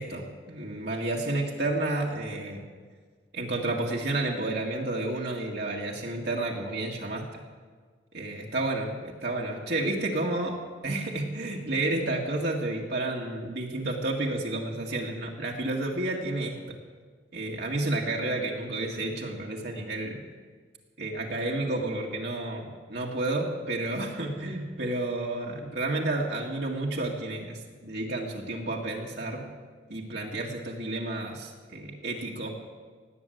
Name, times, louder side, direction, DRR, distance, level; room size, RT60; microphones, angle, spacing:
voice 1, 0.0-2.6 3.3-7.3 8.1-10.6 10.8-16.8 17.3-20.2 21.0-29.4 29.9-32.5, right 2 dB, 60° right, -2 dB, 1.9 m, -31 dB
18.0 x 9.1 x 7.9 m, 1.5 s
head